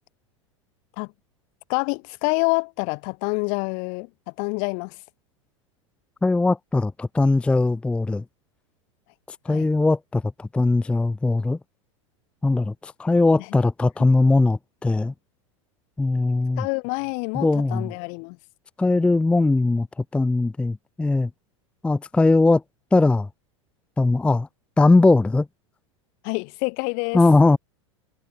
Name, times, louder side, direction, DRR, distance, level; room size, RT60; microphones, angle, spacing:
voice 1, 1.7-4.1 4.4-4.9 9.5-9.7 16.6-18.4 26.2-27.2, left 40 dB or more, 55° left, 1.3 m, -27 dB
voice 2, 6.2-8.2 9.3-11.6 12.4-15.1 16.0-16.7 17.3-17.9 18.8-19.9 20.1-21.3 21.8-22.6 22.9-23.3 24.0-24.5 24.8-25.5 27.1-27.6, left 3 dB, 5° left, 0.4 m, -20 dB
hypercardioid pair, 85°, 17 cm